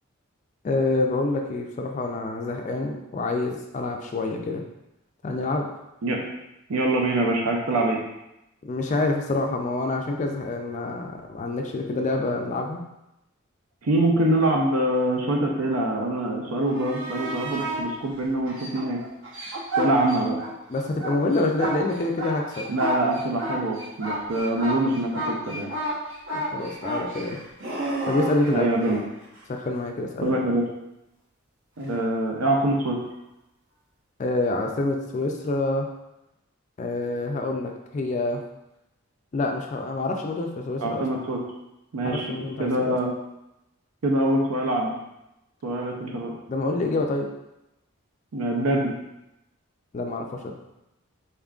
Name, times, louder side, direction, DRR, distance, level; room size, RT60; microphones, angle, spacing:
voice 1, 0.6-4.6 5.2-5.7 8.6-12.8 20.7-22.6 26.3-27.4 28.1-28.7 29.5-30.4 34.2-35.9 36.8-38.4 39.3-41.0 42.0-43.0 46.5-47.3 49.9-50.5, left 2 dB, 35° left, 2 dB, 0.3 m, -27 dB
voice 2, 6.7-8.0 13.8-19.0 19.8-20.4 22.7-25.7 28.5-29.0 30.2-30.6 31.8-33.0 40.8-41.4 41.9-42.3 42.6-43.1 44.0-44.9 45.6-46.3 48.3-48.9, right 1 dB, 90° right, 0 dB, 0.5 m, -24 dB
sound 1, 16.6-17.8 18.4-20.5 20.8-29.0 31.8-31.9, right 1 dB, 65° right, 0.9 m, -31 dB
4.3 x 3.6 x 2.3 m, 0.90 s
head